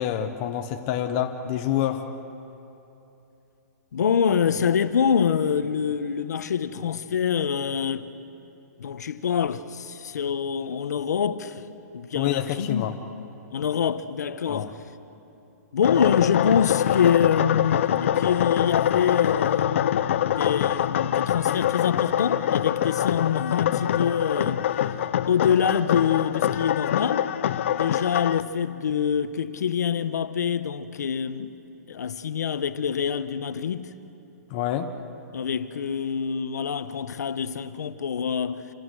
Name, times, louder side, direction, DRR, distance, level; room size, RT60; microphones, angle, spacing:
voice 1, 0.0-2.0 12.1-12.9 14.5-14.7 34.5-34.9, left 11 dB, 25° left, 1.0 m, -27 dB
voice 2, 3.9-8.1 8.8-11.6 11.9-12.9 13.5-14.8 15.7-24.7 25.3-27.3 27.7-31.6 31.9-33.9 35.3-38.7, left 7 dB, 75° left, 1.3 m, -25 dB
sound 1, 15.8-28.4, left 10 dB, 45° left, 0.7 m, -24 dB
28.5 x 26.0 x 6.4 m
hypercardioid pair, 170°, 9 cm